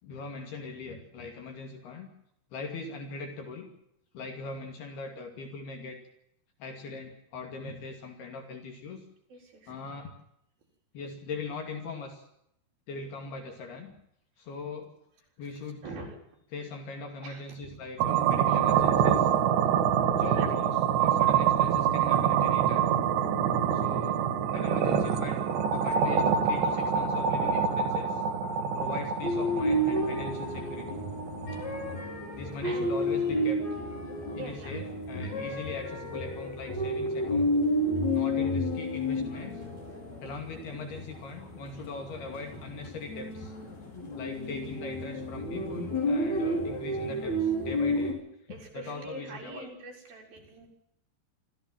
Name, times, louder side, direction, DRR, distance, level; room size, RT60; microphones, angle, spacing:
voice 1, 0.0-2.1 2.5-3.7 4.1-6.0 6.6-9.0 9.7-10.1 10.9-12.3 12.9-13.9 14.4-14.9 15.4-15.8 16.5-19.3 20.1-22.9 23.7-24.3 24.5-28.2 28.8-31.0 32.3-33.6 34.3-37.5 38.1-39.6 40.2-43.5 44.1-48.2 48.4-49.7, left 3 dB, 70° left, 4 dB, 4.3 m, -41 dB
voice 2, 9.3-9.7 15.8-16.2 17.2-17.8 20.3-20.5 31.1-31.2 32.6-33.0 34.4-34.8 48.5-50.7, right 2 dB, 60° right, 1 dB, 5.9 m, -43 dB
sound 1, 18.0-32.0, right 8 dB, 80° right, 4.4 m, -26 dB
sound 2, 29.2-48.1, equal, 40° left, 6.6 m, -31 dB
25.5 x 15.0 x 7.6 m, 0.76 s
omnidirectional pair, 4.9 m